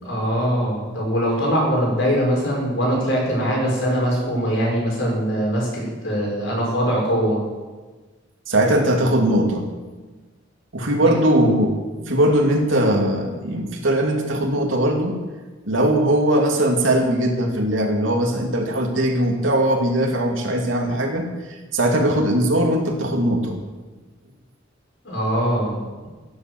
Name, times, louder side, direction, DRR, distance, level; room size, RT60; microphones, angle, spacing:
voice 1, 0.0-7.4 11.0-11.1 25.0-25.8, equal, 70° left, -3 dB, 5.8 m, -22 dB
voice 2, 8.5-9.7 10.7-15.2 15.7-23.6, right 1 dB, 75° right, 1 dB, 2.6 m, -20 dB
15.5 x 8.0 x 7.9 m, 1.3 s
head